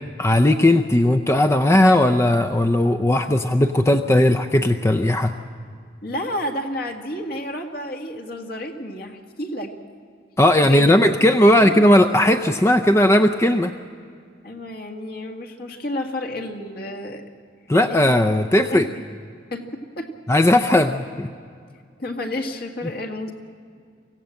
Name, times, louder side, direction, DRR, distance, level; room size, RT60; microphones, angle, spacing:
voice 1, 0.2-5.3 10.4-13.7 17.7-18.9 20.3-21.3, left 1 dB, 15° left, 8 dB, 0.5 m, -17 dB
voice 2, 6.0-9.8 10.6-10.9 11.6-11.8 14.4-17.2 17.9-18.0 18.4-19.0 19.5-20.1 22.0-23.3, left 1 dB, 55° left, 3 dB, 2.0 m, -31 dB
24.5 x 16.0 x 7.7 m, 2.2 s
head